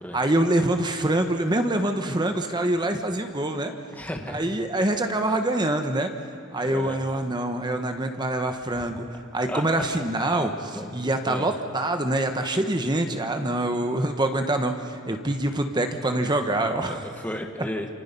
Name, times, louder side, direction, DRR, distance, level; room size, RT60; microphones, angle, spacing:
voice 1, 0.1-3.7 4.3-6.1 6.5-9.0 9.3-17.0, right 1 dB, 20° right, 6 dB, 1.2 m, -25 dB
voice 2, 3.9-4.4 6.7-7.0 8.7-8.8 9.5-9.6 10.7-11.5 16.9-17.9, left 1 dB, 10° left, 2 dB, 1.9 m, -34 dB
28.5 x 27.5 x 5.5 m, 2.4 s
head